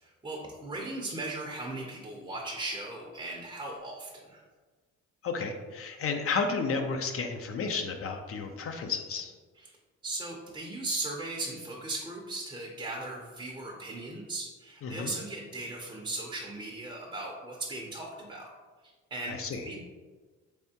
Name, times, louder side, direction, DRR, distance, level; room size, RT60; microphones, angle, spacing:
voice 1, 0.0-4.4 9.6-9.8 10.0-18.5 18.8-19.4 19.6-19.8, right 2 dB, 15° right, -2 dB, 0.5 m, -38 dB
voice 2, 5.2-9.3 14.8-15.1 19.3-19.6, left 4 dB, 50° left, 5 dB, 0.4 m, -32 dB
3.5 x 3.4 x 2.7 m, 1.4 s
cardioid pair, 90°, 30 cm